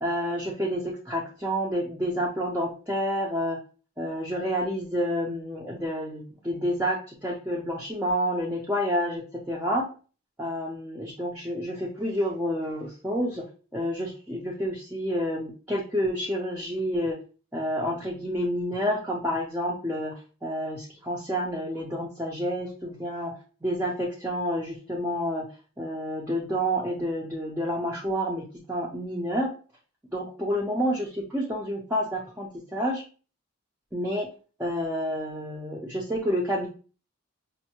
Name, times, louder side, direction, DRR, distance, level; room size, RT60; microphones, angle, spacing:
voice 1, 0.0-3.6 4.0-9.9 10.4-13.4 13.7-17.2 17.5-23.3 23.6-25.5 25.8-29.5 30.1-33.0 33.9-34.3 34.6-36.7, equal, 10° right, -3 dB, 0.4 m, -29 dB
5.2 x 2.1 x 2.8 m, 0.37 s
head